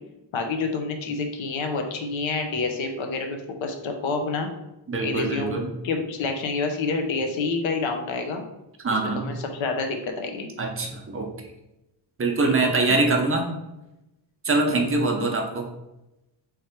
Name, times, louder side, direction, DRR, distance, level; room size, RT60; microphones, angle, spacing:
voice 1, 0.3-4.5 5.0-5.6 5.8-8.4 8.9-10.5 12.4-12.7, left 4 dB, 80° left, 4 dB, 0.8 m, -28 dB
voice 2, 4.9-5.7 8.8-9.3 10.6-11.3 12.2-13.5 14.4-15.6, right 3 dB, 30° right, 2 dB, 0.7 m, -23 dB
3.4 x 3.2 x 4.4 m, 0.93 s
wide cardioid pair, 145°, 46 cm